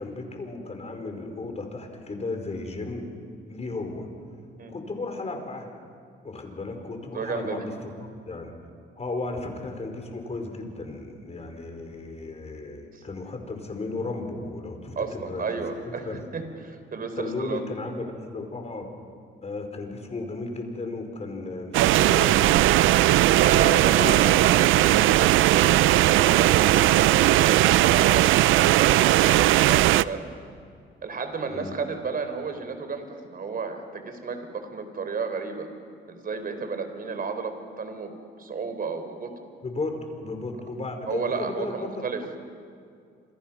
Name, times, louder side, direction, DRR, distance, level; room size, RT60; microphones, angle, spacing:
voice 1, 0.0-3.0 3.5-4.1 4.7-5.7 6.2-8.5 9.0-15.6 16.0-16.2 17.2-18.9 19.4-22.6 23.5-24.2 24.5-24.6 31.5-31.7 39.6-41.9, left 3 dB, 35° left, 4 dB, 5.1 m, -34 dB
voice 2, 7.1-7.7 12.9-13.0 15.0-17.6 23.4-30.2 31.0-35.7 36.1-38.1 38.4-39.3 41.1-42.2, right 5 dB, 45° right, 7 dB, 4.0 m, -32 dB
sound 1, 21.7-30.0, right 15 dB, 85° right, 0.5 m, -18 dB
29.5 x 26.0 x 6.0 m, 2.3 s
cardioid pair, 90°, 20 cm